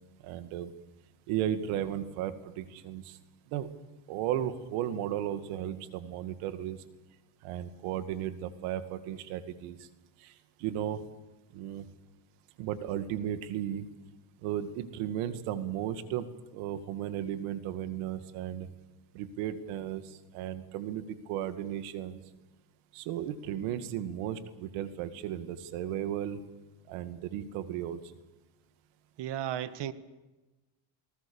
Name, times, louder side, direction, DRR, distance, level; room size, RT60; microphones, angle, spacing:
voice 1, 0.2-0.7 1.3-3.2 3.5-3.7 4.1-6.8 7.4-9.9 10.2-11.0 11.5-11.9 12.6-13.9 14.4-16.3 16.5-18.7 19.1-22.2 22.9-26.5 26.9-28.2, right 11 dB, 85° right, 2.2 m, -35 dB
voice 2, 29.2-29.9, right 11 dB, 55° right, 1.7 m, -34 dB
29.0 x 19.0 x 7.1 m
cardioid pair, 120°, 49 cm